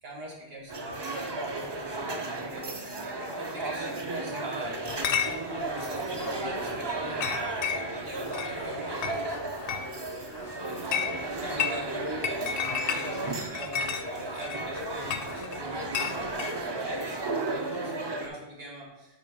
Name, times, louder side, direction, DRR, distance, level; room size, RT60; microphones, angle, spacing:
voice 1, 0.0-7.3 7.7-9.3 11.4-13.2 13.5-19.2, right 1 dB, 60° right, -2 dB, 1.9 m, -42 dB
sound 1, 0.7-18.3, right 2 dB, 35° right, 0.5 m, -34 dB
Chatter / Chink clink, 4.8-16.5, left 7 dB, 65° left, 0.7 m, -34 dB
8.6 x 3.0 x 5.3 m, 0.95 s
omnidirectional pair, 1.1 m